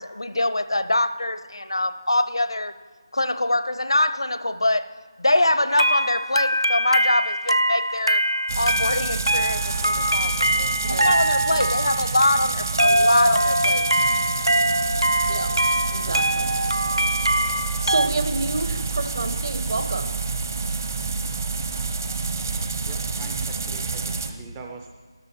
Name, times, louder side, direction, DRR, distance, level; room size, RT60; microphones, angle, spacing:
voice 1, 0.0-2.7 3.1-8.2 8.6-13.9, left 1 dB, 75° left, 12 dB, 0.7 m, -24 dB
sound 1, 5.7-18.1, right 1 dB, 85° right, 0.5 m, -23 dB
sound 2, 8.5-24.3, right 4 dB, 40° right, 0.9 m, -28 dB
voice 2, 10.8-11.2 11.5-11.7 15.2-15.5 15.9-16.5 17.8-20.2, right 3 dB, 55° right, 7 dB, 1.2 m, -29 dB
voice 3, 22.4-24.9, right 4 dB, 15° right, 2 dB, 0.4 m, -43 dB
13.0 x 13.0 x 4.5 m, 1.5 s
figure-of-eight pair, 160°, 3 cm